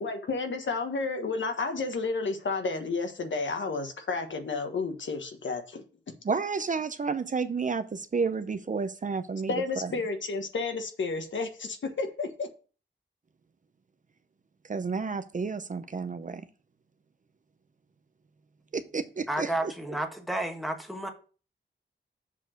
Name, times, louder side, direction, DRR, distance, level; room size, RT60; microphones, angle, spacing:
voice 1, 0.0-5.8 9.5-12.5, left 4 dB, 75° left, 1.3 m, -31 dB
voice 2, 6.3-9.5 9.8-9.9 14.7-16.5 18.7-19.7, right 5 dB, 40° right, 0.6 m, -31 dB
voice 3, 19.3-21.1, right 1 dB, ahead, 1.2 m, -31 dB
7.2 x 4.4 x 6.4 m
wide cardioid pair, 155°, 20 cm